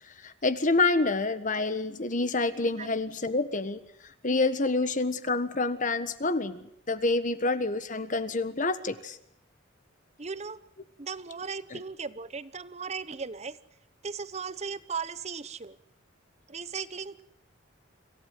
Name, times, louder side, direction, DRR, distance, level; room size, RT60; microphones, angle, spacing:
voice 1, 0.2-3.8 4.2-9.2 11.7-11.8, left 3 dB, 40° left, 12 dB, 1.5 m, -27 dB
voice 2, 10.2-10.6 11.0-13.6 14.0-15.8 16.5-17.2, right 5 dB, 35° right, 16 dB, 0.9 m, -37 dB
26.5 x 15.5 x 9.5 m, 0.71 s
head